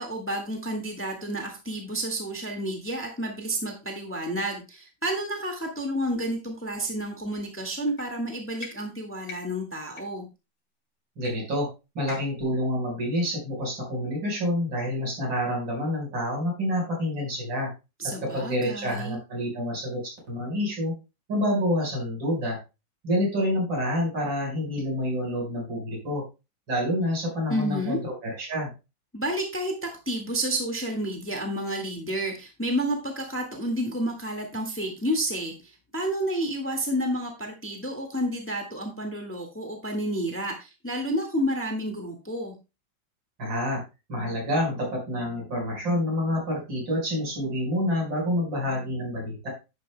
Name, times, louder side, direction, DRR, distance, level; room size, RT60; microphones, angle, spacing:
voice 1, 0.0-10.3 18.0-19.2 27.5-28.0 29.1-42.5, right 1 dB, 5° left, 3 dB, 1.6 m, -30 dB
sound 1, 7.9-8.1 8.5-8.7 9.2-9.4 9.9-10.0 11.2-11.3 11.6-11.7 12.1-12.4, left 4 dB, 90° left, 3.5 m, -41 dB
voice 2, 11.2-11.7 12.0-17.7 18.0-20.9 21.3-22.6 23.0-26.2 26.7-28.7 43.4-43.8 44.1-49.5, left 1 dB, 90° right, -1 dB, 5.5 m, -28 dB
11.0 x 9.4 x 2.2 m, 0.28 s
omnidirectional pair, 2.0 m